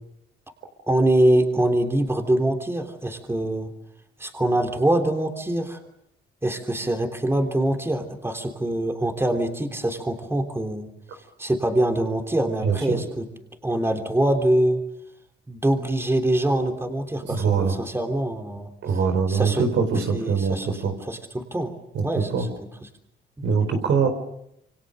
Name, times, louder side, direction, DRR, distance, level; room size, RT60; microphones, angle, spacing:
voice 1, 0.9-3.7 4.2-5.8 6.4-10.9 11.4-13.3 13.6-14.8 15.5-18.7 19.3-19.6 20.1-20.8 21.1-21.7 22.0-22.3 23.4-23.5, right 1 dB, 10° right, 4 dB, 3.3 m, -24 dB
voice 2, 12.6-13.0 17.3-17.7 18.8-20.9 21.9-22.5 23.4-24.1, right 5 dB, 70° right, 7 dB, 4.5 m, -23 dB
28.0 x 24.5 x 6.7 m, 0.80 s
cardioid pair, 90°, 20 cm